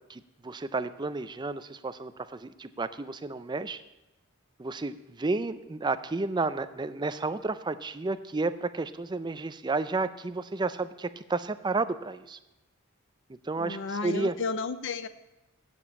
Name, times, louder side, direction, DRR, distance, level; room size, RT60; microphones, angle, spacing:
voice 1, 0.1-3.8 4.6-12.4 13.4-14.3, right 3 dB, 20° right, 12 dB, 0.4 m, -32 dB
voice 2, 13.6-15.1, left 4 dB, 60° left, 12 dB, 0.6 m, -32 dB
8.3 x 7.1 x 8.5 m, 0.98 s
head